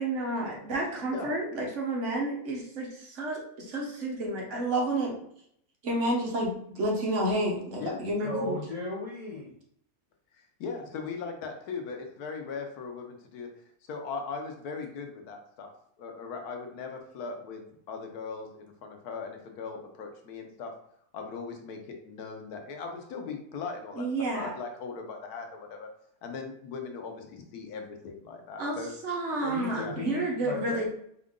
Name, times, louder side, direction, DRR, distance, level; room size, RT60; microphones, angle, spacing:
voice 1, 0.0-5.1 5.8-8.6 23.9-24.5 28.6-28.8 29.0-30.9, right 1 dB, 55° right, -2 dB, 1.2 m, -30 dB
voice 2, 8.2-9.5 29.4-30.9, left 2 dB, 60° left, -5 dB, 0.3 m, -36 dB
voice 3, 10.3-15.7 16.0-20.7 21.1-24.1 24.3-25.9 26.2-28.9 29.7-30.0, left 5 dB, 80° left, 4 dB, 1.2 m, -39 dB
4.5 x 2.5 x 3.6 m, 0.69 s
omnidirectional pair, 1.6 m